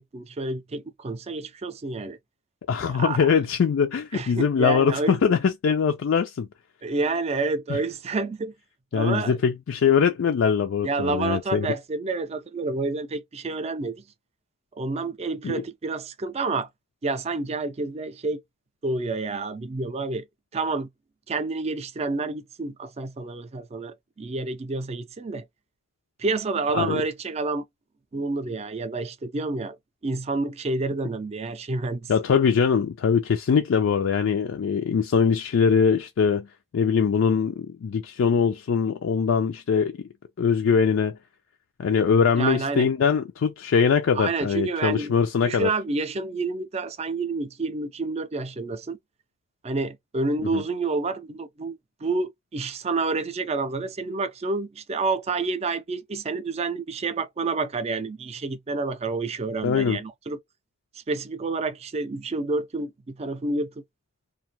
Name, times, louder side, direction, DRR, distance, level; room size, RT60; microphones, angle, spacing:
voice 1, 0.0-2.2 2.8-3.3 4.1-5.2 6.8-8.5 8.9-9.4 10.8-14.0 14.8-16.7 17.0-18.4 18.8-20.2 20.5-20.9 21.3-25.4 26.2-27.7 28.1-29.8 30.0-32.1 42.3-42.9 44.1-45.1 45.4-49.0 49.6-60.4 61.1-63.7, right 3 dB, 30° right, 0.4 m, -29 dB
voice 2, 2.7-6.5 7.7-7.8 8.9-11.7 15.4-15.6 26.7-27.0 32.1-36.5 36.7-40.0 40.4-41.2 41.8-45.7 50.5-50.6 59.6-60.0, left 6 dB, 80° left, 0.4 m, -22 dB
2.5 x 2.2 x 2.8 m
head